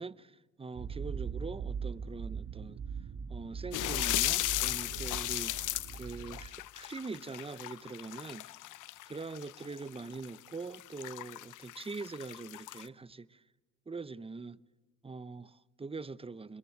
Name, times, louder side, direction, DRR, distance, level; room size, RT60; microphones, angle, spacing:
voice 1, 0.0-2.8 3.3-5.6 5.9-8.5 9.1-13.4 13.9-14.6 15.0-16.6, right 4 dB, 20° right, 0.8 m, -43 dB
sound 1, 0.8-6.5, right 6 dB, 50° right, 1.8 m, -40 dB
sound 2, 3.7-12.9, left 16 dB, 85° left, 0.9 m, -36 dB
26.0 x 21.5 x 7.9 m
cardioid pair, 90°, 30 cm